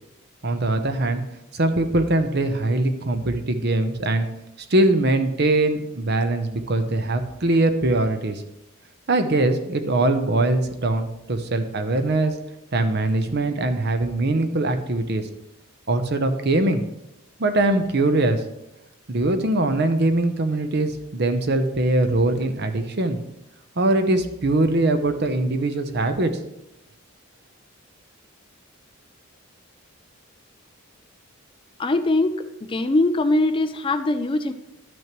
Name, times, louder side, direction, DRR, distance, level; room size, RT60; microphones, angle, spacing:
voice 1, 0.4-1.2 1.5-4.3 4.7-8.4 9.1-12.3 12.7-15.3 15.9-16.8 17.4-18.4 19.1-23.2 23.8-26.3, right 2 dB, 50° right, 8 dB, 0.8 m, -22 dB
voice 2, 31.8-34.5, left 2 dB, 25° left, 9 dB, 0.4 m, -22 dB
12.0 x 6.2 x 3.1 m, 0.88 s
head